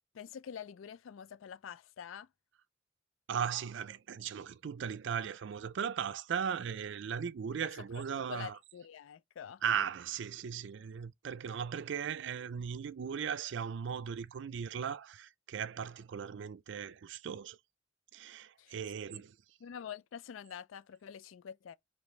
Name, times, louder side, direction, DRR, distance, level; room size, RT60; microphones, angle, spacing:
voice 1, 0.1-2.3 8.3-9.6 18.6-18.8 19.1-19.2 19.6-21.8, left 8 dB, 85° left, 0.4 m, -46 dB
voice 2, 3.3-8.6 9.6-17.6 18.1-19.4, right 7 dB, 65° right, 0.4 m, -37 dB
4.9 x 3.1 x 3.2 m
head